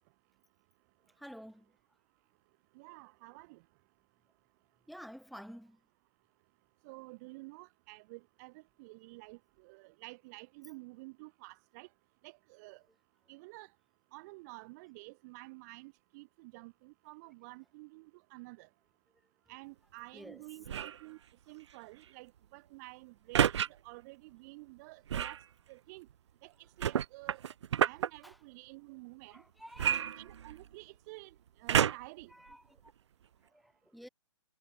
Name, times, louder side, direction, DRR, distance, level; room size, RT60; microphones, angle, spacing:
voice 1, 1.2-1.6 4.9-5.8 20.1-20.4 29.3-30.1 32.3-32.6 33.5-33.6 33.9-34.1, equal, ahead, 1.5 m, -49 dB
voice 2, 2.8-3.6 6.8-11.9 12.2-12.8 13.3-13.7 14.1-18.1 18.3-18.7 19.5-21.2 21.5-25.4 25.7-26.1 26.4-26.5 26.8-27.4 27.8-29.4 30.2-31.3 31.6-32.3, right 25 dB, 35° right, 1.0 m, -51 dB
Foley Metal trash can lid opening & closing, 20.6-21.0 23.3-23.7 25.1-25.4 26.8-28.1 29.8-30.7 31.7-32.2 32.9-33.0, right 9 dB, 70° right, 0.4 m, -29 dB
hypercardioid pair, 125°, 15 cm